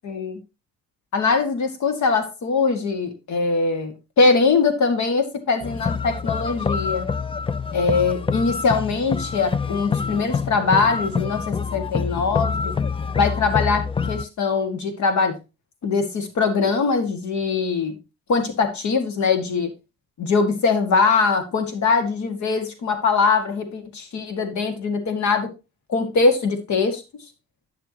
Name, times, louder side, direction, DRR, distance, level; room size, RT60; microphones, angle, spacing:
voice 1, 0.0-0.4 1.1-7.1 7.7-12.8 13.1-15.4 15.8-18.0 18.3-19.7 20.2-25.5 25.9-27.0, left 4 dB, 65° left, 6 dB, 2.0 m, -22 dB
sound 1, 5.6-14.2, left 5 dB, 20° left, 0.4 m, -26 dB
9.7 x 6.8 x 2.9 m, 0.25 s
cardioid pair, 90°, 30 cm